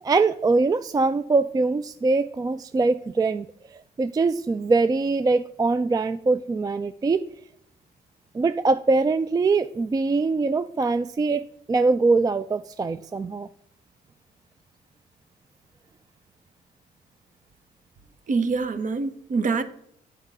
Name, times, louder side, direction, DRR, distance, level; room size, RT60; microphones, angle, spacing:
voice 1, 0.0-3.5 3.7-7.2 8.3-13.5, right 3 dB, 20° right, 0.3 m, -23 dB
voice 2, 18.3-19.6, right 4 dB, 50° right, 0.9 m, -25 dB
8.1 x 4.7 x 5.4 m
cardioid pair, 75°, 18 cm